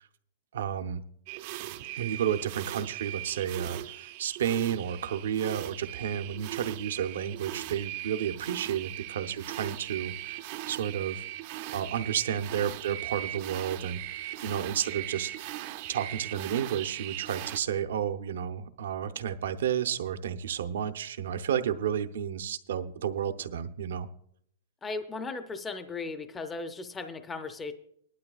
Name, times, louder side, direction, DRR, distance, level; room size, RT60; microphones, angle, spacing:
voice 1, 0.5-1.0 2.0-11.3 11.7-14.0 14.4-15.3 15.9-24.1, right 9 dB, 80° right, 10 dB, 0.8 m, -31 dB
sound 1, 1.3-17.6, right 16 dB, 40° right, 0.4 m, -39 dB
voice 2, 24.8-27.7, left 3 dB, 10° left, 8 dB, 0.5 m, -37 dB
19.5 x 11.5 x 2.4 m, 0.67 s
supercardioid pair, 170°, 0 cm